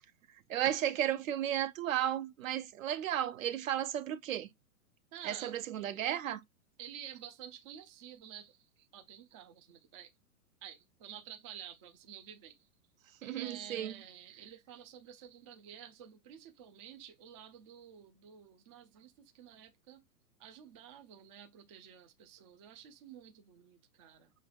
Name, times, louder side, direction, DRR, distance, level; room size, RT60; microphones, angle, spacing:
voice 1, 0.3-4.5 5.2-6.4 13.2-13.9, right 11 dB, 60° right, 0.8 m, -34 dB
voice 2, 5.1-5.5 6.8-10.1 10.6-12.7 13.4-20.0 20.4-24.3, right 9 dB, 20° right, 0.4 m, -51 dB
6.0 x 3.4 x 2.3 m
hypercardioid pair, 120°, 46 cm